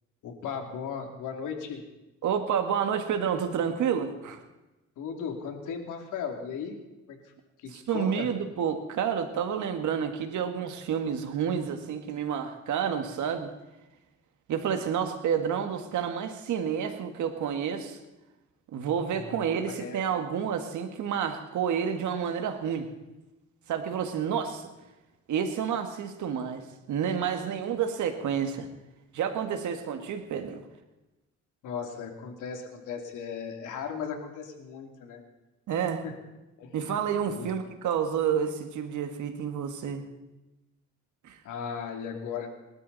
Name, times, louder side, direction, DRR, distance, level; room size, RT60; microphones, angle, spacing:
voice 1, 0.2-1.8 5.0-6.8 7.1-7.2 7.6-8.3 19.2-20.0 31.6-35.2 36.0-36.1 36.6-37.0 37.3-37.5 41.4-42.5, left 6 dB, 85° left, 3 dB, 2.9 m, -37 dB
voice 2, 2.2-4.4 7.7-13.5 14.5-18.0 18.7-22.9 23.7-24.7 25.3-28.7 29.1-30.6 35.7-36.0 36.7-40.0 41.2-41.4, right 8 dB, 75° right, 6 dB, 1.8 m, -29 dB
26.5 x 13.0 x 4.1 m, 1.0 s
cardioid pair, 90°, 30 cm